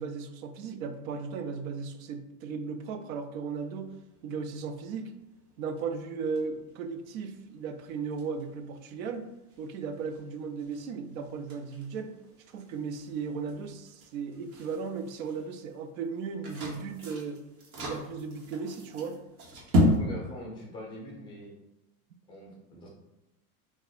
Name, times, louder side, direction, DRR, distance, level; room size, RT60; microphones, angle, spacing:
voice 1, 0.0-3.9 4.2-5.1 5.6-9.3 9.6-12.1 12.5-17.4 17.8-19.2, right 5 dB, 65° right, 8 dB, 0.5 m, -36 dB
sound 1, 3.6-20.0, left 1 dB, 85° right, 1.1 m, -36 dB
voice 2, 20.0-21.5 22.3-22.9, equal, 10° left, -2 dB, 0.6 m, -43 dB
2.4 x 2.3 x 4.0 m, 0.92 s
supercardioid pair, 155°, 45 cm